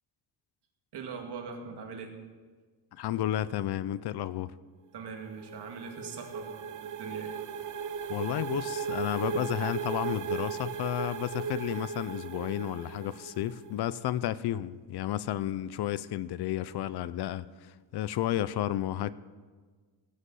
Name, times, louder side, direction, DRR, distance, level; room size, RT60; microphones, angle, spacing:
voice 1, 0.9-2.1 4.9-7.4, right 5 dB, 70° right, 2.2 m, -41 dB
voice 2, 3.0-4.5 8.1-17.4 17.9-19.1, left 12 dB, 65° left, 0.6 m, -32 dB
sound 1, 5.1-13.7, right 7 dB, 45° right, 0.7 m, -37 dB
18.0 x 6.5 x 7.7 m
cardioid pair, 145°, 42 cm